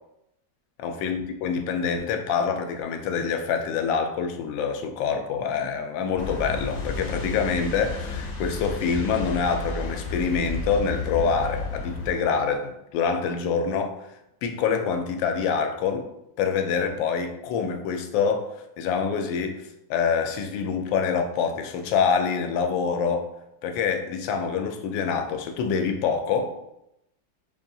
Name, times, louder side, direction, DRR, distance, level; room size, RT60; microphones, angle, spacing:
voice 1, 0.8-14.0 14.4-16.0 16.4-18.5 18.8-23.3 23.6-26.5, left 6 dB, 85° left, 5 dB, 1.3 m, -26 dB
sound 1, 6.2-12.1, left 3 dB, 55° left, 0.8 m, -32 dB
5.4 x 2.6 x 2.6 m, 0.84 s
omnidirectional pair, 2.0 m